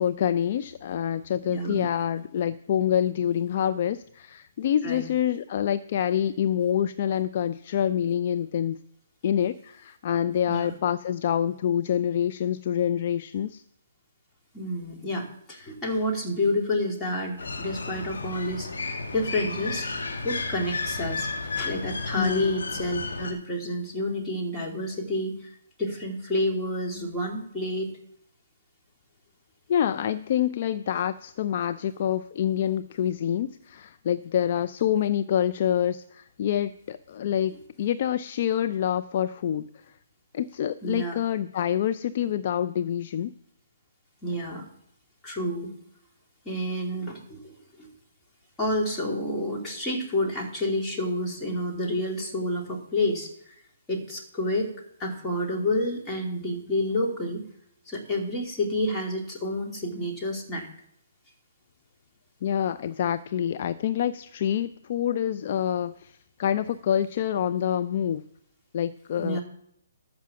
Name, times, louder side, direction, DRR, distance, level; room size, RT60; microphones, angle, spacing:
voice 1, 0.0-8.8 9.2-13.6 22.2-22.6 29.7-37.5 37.8-39.6 40.3-43.3 62.4-68.2 68.7-69.4, left 9 dB, 45° left, 12 dB, 0.4 m, -26 dB
voice 2, 1.5-1.9 4.8-5.1 10.5-10.7 14.5-18.7 19.1-19.9 20.2-25.5 25.8-27.9 40.8-41.2 44.2-44.7 45.2-45.7 46.4-47.9 48.6-53.5 53.9-54.7 55.0-57.4 57.9-60.7 69.2-69.4, left 1 dB, 15° left, -1 dB, 2.8 m, -29 dB
sound 1, 17.4-23.3, left 3 dB, 75° left, 1.8 m, -33 dB
13.0 x 5.9 x 7.1 m, 0.72 s
hypercardioid pair, 140°, 0 cm